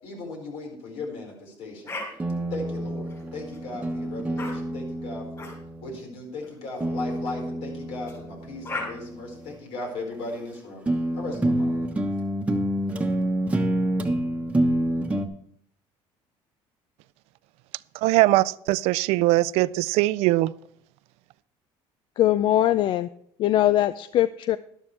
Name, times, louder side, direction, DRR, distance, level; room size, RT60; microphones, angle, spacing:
voice 1, 0.0-2.0 2.5-5.5 5.8-10.8 11.1-11.8, left 2 dB, 70° left, 4.8 m, -37 dB
sound 1, 1.9-2.1 3.0-3.6 4.4-4.5 5.4-5.5 6.4-6.6 8.1-8.2 8.6-8.9, left 3 dB, 30° left, 5.8 m, -35 dB
sound 2, 2.2-6.0 6.8-9.5 10.3-10.4 10.9-15.3, right 1 dB, 10° right, 1.1 m, -28 dB
voice 2, 17.9-20.5, right 18 dB, 80° right, 0.4 m, -21 dB
voice 3, 22.2-23.1 23.4-24.6, left 13 dB, 50° left, 0.3 m, -21 dB
12.0 x 12.0 x 3.3 m
cardioid pair, 130°, 11 cm